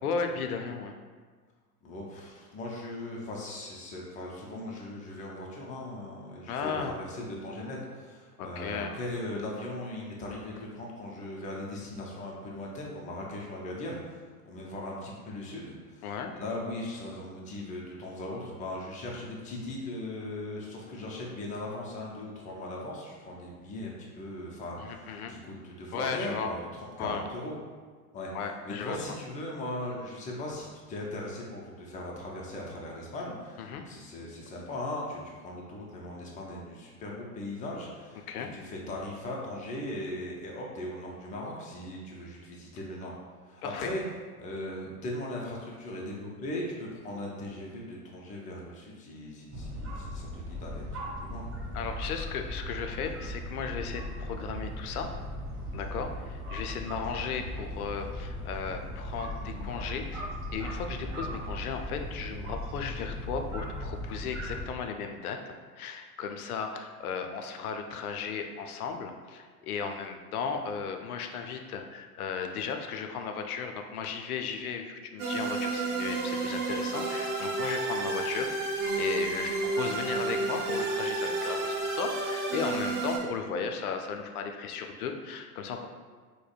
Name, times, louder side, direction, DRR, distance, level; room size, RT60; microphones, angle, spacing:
voice 1, 0.0-1.0 6.5-6.9 8.4-8.9 16.0-16.3 24.8-25.3 25.9-26.5 27.0-27.2 28.3-29.0 33.6-33.9 38.3-38.5 43.6-43.9 51.7-55.1 55.7-85.9, left 6 dB, 65° left, 5 dB, 0.5 m, -35 dB
voice 2, 1.8-27.6 28.1-28.3 28.6-43.2 43.5-44.0 44.4-51.5 59.4-59.7, left 1 dB, 15° left, -2 dB, 0.4 m, -39 dB
sound 1, 49.5-64.6, equal, 25° right, 0.7 m, -38 dB
sound 2, 75.2-83.2, right 3 dB, 65° right, 0.9 m, -31 dB
4.9 x 2.1 x 2.3 m, 1.5 s
figure-of-eight pair, 85°, 47 cm